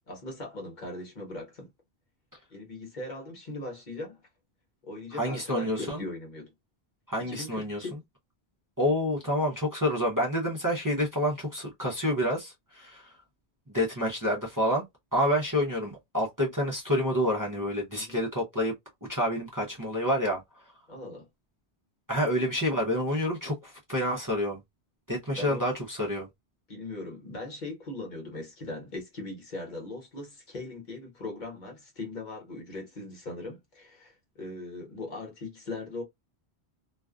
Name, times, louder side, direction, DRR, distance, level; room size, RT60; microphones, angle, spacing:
voice 1, 0.1-1.7 2.5-4.2 4.8-6.5 7.2-8.0 17.9-18.2 20.9-21.2 25.3-25.7 26.7-36.0, left 2 dB, 45° left, 1.1 m, -39 dB
voice 2, 5.1-6.0 7.1-7.8 8.8-13.1 13.7-14.8 15.1-18.7 19.1-20.4 22.1-24.6 25.1-26.3, equal, 25° right, 0.5 m, -28 dB
2.5 x 2.2 x 2.3 m
omnidirectional pair, 1.1 m